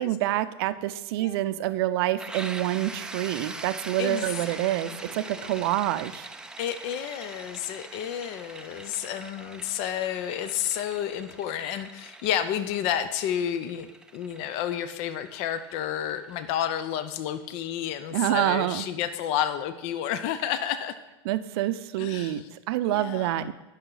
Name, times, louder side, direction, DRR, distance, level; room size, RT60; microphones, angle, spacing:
voice 1, 0.0-6.3 18.1-18.9 21.2-22.4 22.7-23.5, right 14 dB, 65° right, 13 dB, 0.5 m, -27 dB
sound 1, 2.2-17.8, right 2 dB, 5° right, 0.4 m, -43 dB
voice 2, 4.0-4.6 4.9-5.5 6.6-20.9 22.0-22.5 22.9-23.5, left 10 dB, 50° left, 12 dB, 0.5 m, -31 dB
11.0 x 5.7 x 3.9 m, 1.1 s
supercardioid pair, 130°, 14 cm